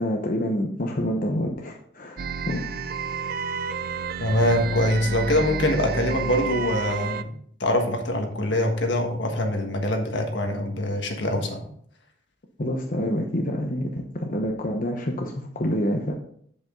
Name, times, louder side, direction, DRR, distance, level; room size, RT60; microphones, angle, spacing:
voice 1, 0.0-2.6 12.6-16.1, equal, 45° left, 1 dB, 0.9 m, -27 dB
sound 1, 2.2-7.2, right 5 dB, 50° right, 0.4 m, -30 dB
voice 2, 4.2-7.3 7.6-11.6, left 1 dB, 70° left, 3 dB, 1.6 m, -24 dB
7.9 x 7.8 x 3.8 m, 0.62 s
head